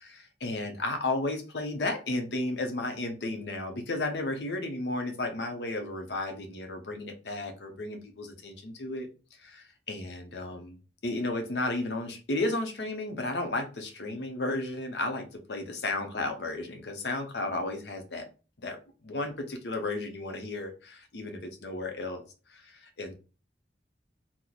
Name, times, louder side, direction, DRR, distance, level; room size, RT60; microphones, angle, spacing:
voice 1, 0.1-9.1 9.4-10.8 11.0-18.3 18.6-22.2 22.5-23.1, left 2 dB, 70° left, 5 dB, 0.7 m, -33 dB
3.0 x 2.0 x 3.9 m, 0.34 s
head